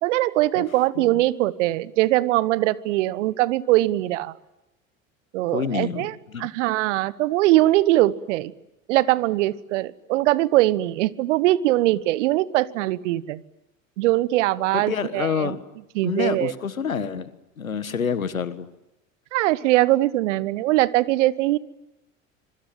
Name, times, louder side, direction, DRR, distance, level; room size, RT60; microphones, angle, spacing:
voice 1, 0.0-4.4 5.3-6.1 6.4-8.5 8.9-13.4 14.0-15.5 15.9-16.5 19.3-21.6, right 16 dB, 65° right, 19 dB, 1.2 m, -21 dB
voice 2, 5.5-6.5 14.7-15.6 16.0-17.3 17.6-18.7, left 6 dB, 90° left, 14 dB, 1.5 m, -28 dB
26.0 x 23.5 x 9.1 m, 0.92 s
figure-of-eight pair, 80°, 40 cm